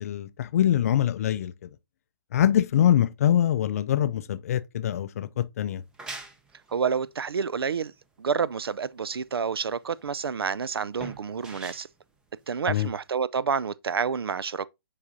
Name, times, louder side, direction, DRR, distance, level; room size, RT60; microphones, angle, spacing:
voice 1, 0.0-1.7 2.3-5.8 12.7-12.9, left 10 dB, 40° left, 0.4 m, -24 dB
sound 1, 5.7-13.1, right 3 dB, 5° right, 0.6 m, -46 dB
voice 2, 6.7-7.9 8.2-11.9 12.5-14.7, right 6 dB, 85° right, 0.4 m, -29 dB
7.1 x 4.9 x 2.7 m
hypercardioid pair, 150°, 12 cm